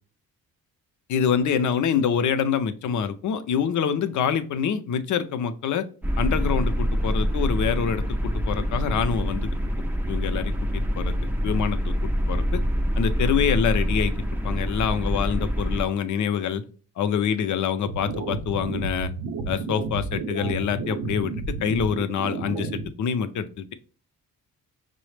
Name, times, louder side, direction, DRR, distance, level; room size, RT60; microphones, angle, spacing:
voice 1, 1.1-5.9 6.2-9.5 10.1-11.1 11.4-11.9 12.3-12.6 13.0-14.1 14.4-16.6 17.0-19.1 19.5-21.3 21.6-23.7, left 7 dB, 55° left, 11 dB, 0.5 m, -26 dB
sound 1, 6.0-15.8, equal, 5° right, 0.3 m, -25 dB
sound 2, 17.9-22.9, right 4 dB, 60° right, 0.6 m, -31 dB
5.5 x 2.0 x 3.2 m, 0.39 s
cardioid pair, 125°, 36 cm